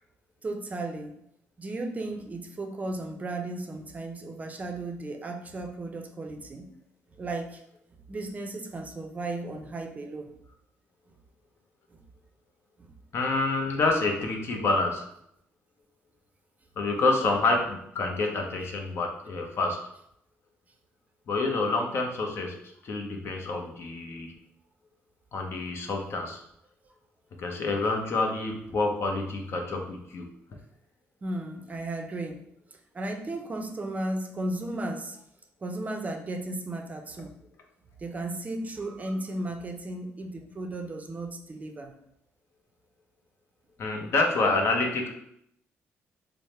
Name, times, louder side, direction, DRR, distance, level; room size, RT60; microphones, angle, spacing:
voice 1, 0.4-1.2 1.6-6.7 7.2-7.6 8.1-10.3 11.9-12.0 12.8-12.9 31.2-32.4 32.7-35.2 35.6-37.4 38.0-41.9, right 2 dB, 30° right, 4 dB, 0.5 m, -35 dB
voice 2, 13.1-15.1 16.8-19.8 21.3-22.6 22.8-24.3 25.3-26.4 27.4-30.3 43.8-45.1, left 3 dB, 55° left, 2 dB, 0.7 m, -27 dB
3.4 x 2.0 x 4.2 m, 0.74 s
cardioid pair, 90°, 5 cm